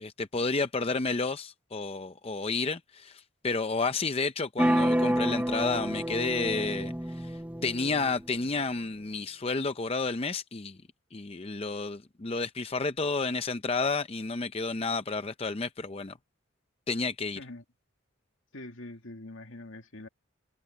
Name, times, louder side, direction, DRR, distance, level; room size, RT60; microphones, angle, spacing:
voice 1, 0.0-10.8 11.1-16.2 16.9-17.4, left 3 dB, 30° left, 0.6 m, -31 dB
sound 1, 4.6-8.4, equal, 10° right, 0.7 m, -29 dB
voice 2, 18.5-20.1, left 2 dB, 75° left, 2.5 m, -44 dB
head